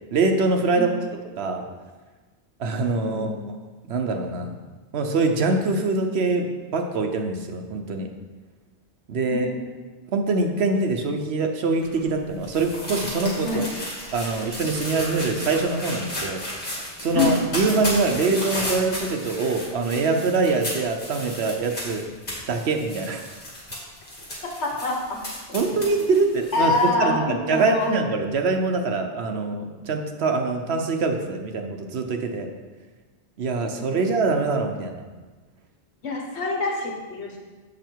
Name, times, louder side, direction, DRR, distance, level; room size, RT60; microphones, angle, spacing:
voice 1, 0.1-1.0 1.4-1.7 2.6-3.4 3.9-4.6 4.9-8.1 9.1-9.5 10.1-13.7 14.1-16.4 17.0-22.0 22.5-23.2 25.5-32.5 33.4-35.0, right 3 dB, 70° right, 4 dB, 1.0 m, -24 dB
voice 2, 3.0-3.5 9.3-9.7 13.4-13.6 17.1-17.4 24.6-25.0 25.5-25.6 26.5-27.9 33.7-33.9 36.0-37.4, left 3 dB, 75° left, 0 dB, 1.5 m, -25 dB
sound 1, 11.8-26.8, left 1 dB, 50° left, 2.4 m, -34 dB
7.3 x 5.6 x 4.5 m, 1.3 s
omnidirectional pair, 1.1 m